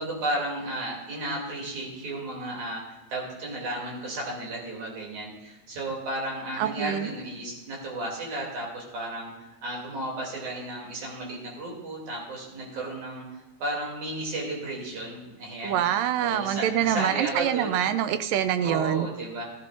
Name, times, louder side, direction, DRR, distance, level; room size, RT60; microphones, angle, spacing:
voice 1, 0.0-15.8 16.2-17.8 18.6-19.5, right 1 dB, 55° right, -3 dB, 4.0 m, -33 dB
voice 2, 6.6-7.1 15.6-19.1, right 10 dB, 80° right, 11 dB, 2.1 m, -25 dB
15.5 x 13.0 x 2.5 m, 1.0 s
omnidirectional pair, 4.1 m